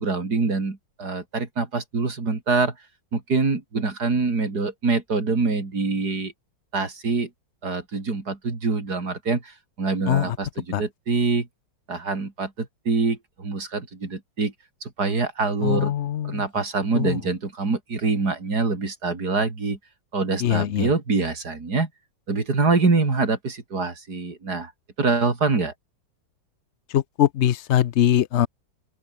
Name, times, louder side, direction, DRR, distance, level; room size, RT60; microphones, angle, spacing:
voice 1, 0.0-2.7 3.1-6.3 6.7-7.3 7.6-11.5 11.9-14.5 14.8-15.9 16.2-19.8 20.1-21.9 22.3-24.7 25.0-25.7, right 4 dB, 55° right, 4.2 m, -25 dB
voice 2, 15.6-16.4 16.9-17.2 20.4-20.9 26.9-28.5, left 11 dB, 75° left, 0.6 m, -22 dB
open air
omnidirectional pair, 2.0 m